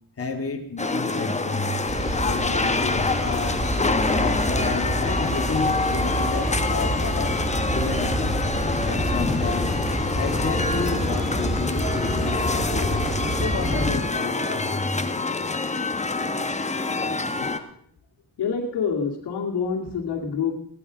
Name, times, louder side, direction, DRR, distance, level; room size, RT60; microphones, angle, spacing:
voice 1, 0.2-1.8 2.2-3.7 4.1-7.3 7.7-8.4 8.9-9.7 10.1-15.1, left 4 dB, 35° left, 2 dB, 2.6 m, -31 dB
sound 1, 0.8-17.6, left 3 dB, 15° left, 1.2 m, -26 dB
sound 2, 1.9-13.9, equal, ahead, 3.4 m, -28 dB
voice 2, 18.4-20.5, left 6 dB, 80° left, 2 dB, 2.3 m, -27 dB
17.0 x 12.5 x 5.0 m, 0.62 s
cardioid pair, 95°, 40 cm